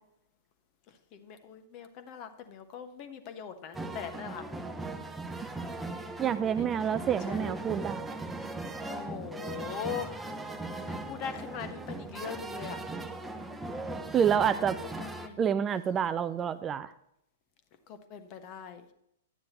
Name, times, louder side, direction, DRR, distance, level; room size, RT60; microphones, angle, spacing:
voice 1, 1.1-4.4 5.9-6.0 6.5-6.7 6.9-7.8 8.9-10.1 10.9-12.8 14.5-14.6 15.0-15.4 17.9-18.8, left 8 dB, 35° left, 9 dB, 1.2 m, -41 dB
sound 1, 3.7-15.3, right 2 dB, 5° right, 0.8 m, -39 dB
voice 2, 6.2-8.2 14.1-14.8 15.4-16.9, right 8 dB, 20° right, 12 dB, 0.4 m, -28 dB
11.0 x 9.3 x 3.0 m, 0.76 s
figure-of-eight pair, 110°, 0 cm